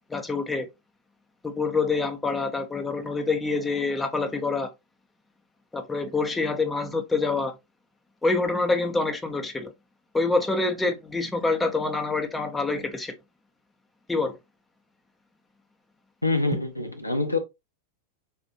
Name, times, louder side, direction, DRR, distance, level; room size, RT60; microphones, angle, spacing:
voice 1, 0.1-0.7 1.4-4.7 5.7-7.5 8.2-9.7 10.1-13.1 14.1-14.4, left 3 dB, 10° left, 0.6 m, -26 dB
voice 2, 16.2-17.4, left 3 dB, 85° left, 0.6 m, -25 dB
4.1 x 2.5 x 2.7 m
figure-of-eight pair, 90°, 0 cm